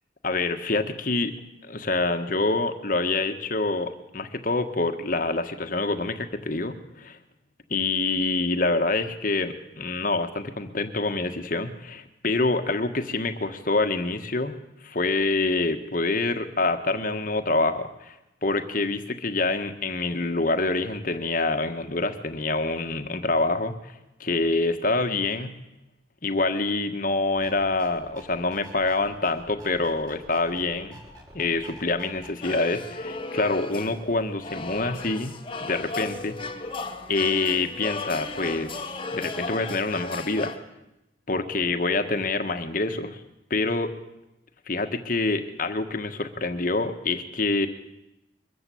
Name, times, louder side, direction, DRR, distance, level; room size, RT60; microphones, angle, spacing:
voice 1, 0.2-1.3 1.6-7.2 7.7-14.5 14.8-18.1 18.4-23.9 24.2-25.5 26.2-31.0 31.3-36.4 37.1-40.5 41.3-43.2 43.5-43.9 44.7-47.7, left 3 dB, 45° left, 8 dB, 1.6 m, -26 dB
sound 1, 27.4-32.3, equal, 20° right, 4.8 m, -48 dB
sound 2, 32.4-40.6, left 3 dB, 30° left, 1.5 m, -35 dB
23.0 x 14.0 x 8.6 m, 0.92 s
head